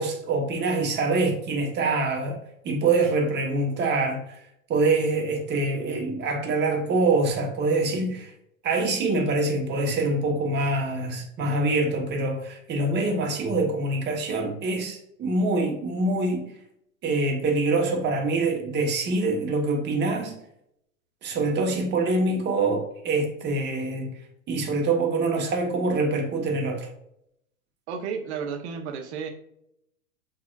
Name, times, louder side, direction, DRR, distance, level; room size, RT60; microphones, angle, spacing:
voice 1, 0.0-2.4 2.6-4.4 4.7-8.3 8.6-16.5 17.0-20.4 21.2-24.1 24.5-26.9, right 3 dB, 25° right, 2 dB, 1.2 m, -25 dB
voice 2, 27.9-29.3, right 6 dB, 50° right, 4 dB, 1.1 m, -32 dB
7.5 x 2.8 x 2.4 m, 0.76 s
hypercardioid pair, 105°, 42 cm